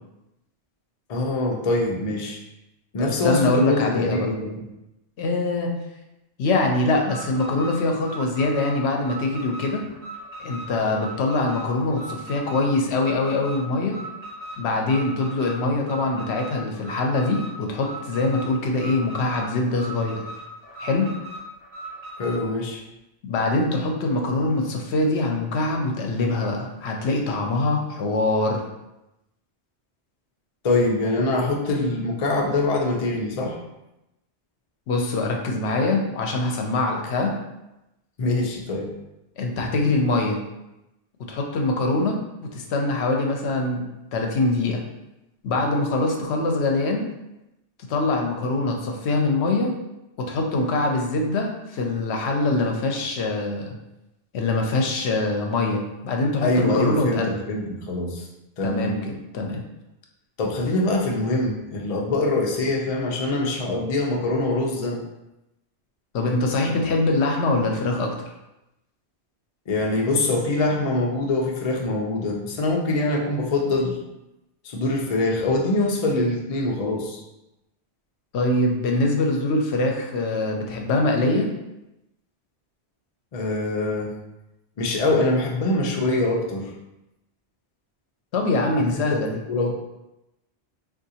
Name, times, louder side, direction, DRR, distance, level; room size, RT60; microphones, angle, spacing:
voice 1, 1.1-2.4 2.9-4.6 22.2-22.8 30.6-33.6 38.2-38.9 56.4-58.3 58.6-59.0 60.4-65.0 69.7-74.0 74.6-77.2 83.3-84.1 84.8-86.7 88.8-89.7, left 2 dB, 45° left, -1 dB, 0.5 m, -24 dB
voice 2, 3.0-4.3 5.2-5.8 6.4-9.8 10.4-14.0 14.6-20.2 20.8-21.1 23.2-28.6 34.9-37.3 39.4-40.4 41.3-42.2 42.5-44.8 45.4-47.1 47.9-49.7 50.2-53.8 54.3-57.4 58.6-59.6 66.1-68.1 78.3-81.5 88.3-89.4, left 2 dB, 75° left, 1 dB, 0.8 m, -23 dB
Alarm, 7.0-22.4, right 1 dB, 10° right, 1.3 m, -39 dB
3.7 x 2.4 x 2.7 m, 0.92 s
omnidirectional pair, 1.1 m